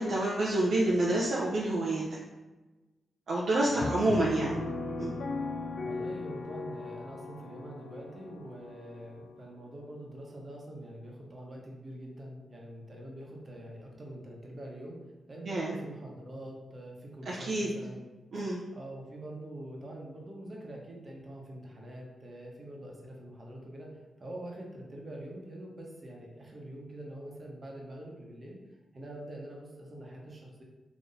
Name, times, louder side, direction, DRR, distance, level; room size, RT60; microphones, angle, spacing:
voice 1, 0.0-2.2 3.3-4.6 5.0-5.1 15.4-15.8 17.3-17.7 18.3-18.6, right 2 dB, 70° right, -5 dB, 0.5 m, -28 dB
voice 2, 3.6-4.4 5.8-15.0 15.3-18.0 18.7-23.9 24.2-28.6 28.9-30.6, right 1 dB, 45° right, -1 dB, 0.9 m, -44 dB
Piano, 3.8-9.3, left 3 dB, 65° left, 0.3 m, -37 dB
3.9 x 2.8 x 2.6 m, 1.1 s
supercardioid pair, 40°, 0 cm